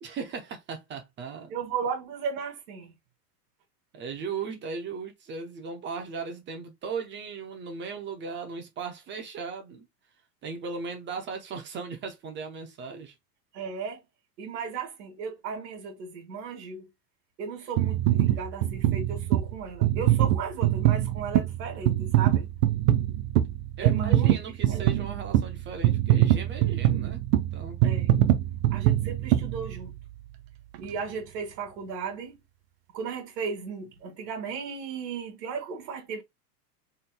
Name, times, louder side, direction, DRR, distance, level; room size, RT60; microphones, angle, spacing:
voice 1, 0.0-1.5 3.9-9.9 10.4-13.1 23.8-27.2 27.5-27.8, right 5 dB, 25° right, 0.8 m, -37 dB
voice 2, 1.5-2.9 4.5-4.6 13.5-14.0 14.4-16.9 17.4-22.4 23.8-24.3 24.7-24.9 27.8-28.1 28.7-29.9 30.8-32.4 32.9-36.2, right 5 dB, 80° right, 2.3 m, -35 dB
sound 1, 17.8-30.2 30.7-30.9, right 13 dB, 55° right, 0.8 m, -24 dB
4.5 x 3.7 x 2.2 m
supercardioid pair, 145°, 49 cm